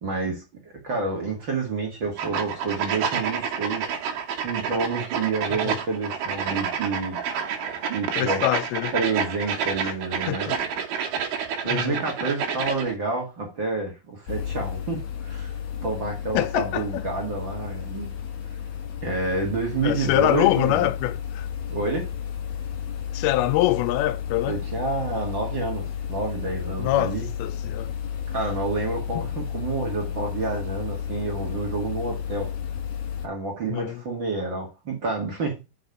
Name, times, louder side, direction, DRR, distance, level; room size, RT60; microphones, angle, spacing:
voice 1, 0.0-3.9 4.4-7.2 7.9-8.4 8.9-10.5 11.6-15.6 15.8-18.1 19.0-20.9 21.7-22.1 24.5-27.3 28.3-32.5 33.2-35.5, right 3 dB, 40° right, 1.8 m, -29 dB
sound 1, 2.2-12.9, right 7 dB, 75° right, 2.9 m, -29 dB
voice 2, 8.2-8.9 9.8-9.9 10.3-10.6 11.7-12.0 16.3-17.0 19.8-21.5 23.1-24.6 26.8-27.9 33.7-34.0, left 15 dB, 85° left, 2.4 m, -24 dB
sound 2, 14.3-33.3, left 8 dB, 65° left, 2.2 m, -32 dB
6.2 x 5.4 x 4.7 m
omnidirectional pair, 4.5 m